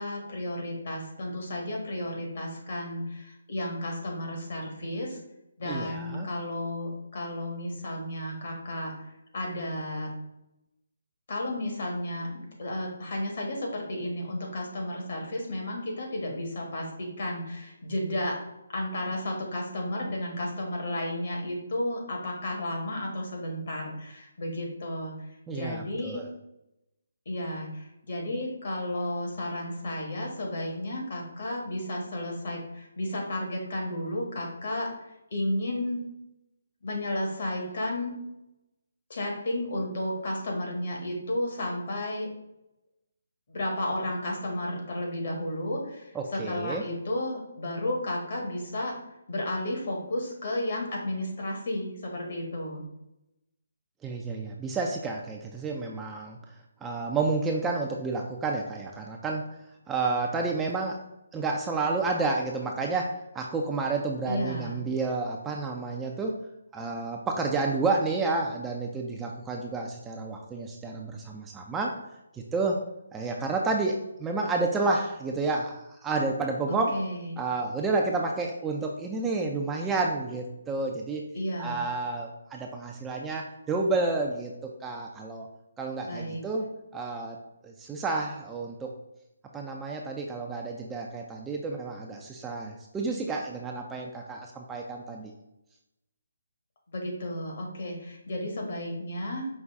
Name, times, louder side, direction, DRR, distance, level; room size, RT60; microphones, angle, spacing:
voice 1, 0.0-5.2 5.6-8.9 9.3-10.1 11.3-18.3 18.7-25.1 25.5-26.2 27.2-34.9 35.3-36.0 36.8-38.2 39.1-42.3 43.5-48.9 49.3-52.8 64.3-64.8 76.7-77.4 81.3-81.8 86.0-86.4 96.9-99.5, left 1 dB, 55° left, -1 dB, 1.4 m, -32 dB
voice 2, 5.6-6.3 25.5-26.3 46.1-46.8 54.0-56.4 56.8-59.4 59.9-61.0 61.3-66.4 66.7-71.9 72.3-72.8 73.1-76.9 77.4-81.3 81.6-85.5 85.8-87.4 87.6-88.9 89.5-95.3, right 3 dB, 10° right, 0 dB, 0.3 m, -30 dB
5.3 x 2.4 x 3.5 m, 0.89 s
hypercardioid pair, 160°, 0 cm